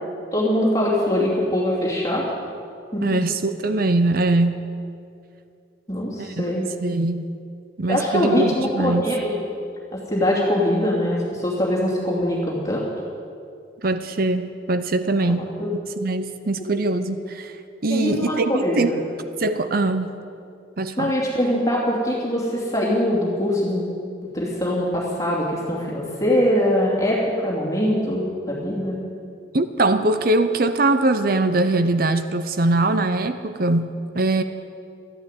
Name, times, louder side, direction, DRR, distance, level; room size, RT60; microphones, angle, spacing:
voice 1, 0.3-2.3 2.9-3.0 5.9-6.6 7.9-9.4 9.9-12.9 15.2-15.7 17.9-19.0 21.0-23.8 24.3-29.0, left 1 dB, 20° left, -5 dB, 2.7 m, -22 dB
voice 2, 3.0-4.6 6.2-6.5 6.8-7.4 7.8-9.1 13.8-15.5 16.0-17.5 17.8-18.9 19.4-20.1 20.8-21.1 29.5-34.4, right 2 dB, 50° right, 10 dB, 0.7 m, -22 dB
14.0 x 10.5 x 9.1 m, 2.5 s
head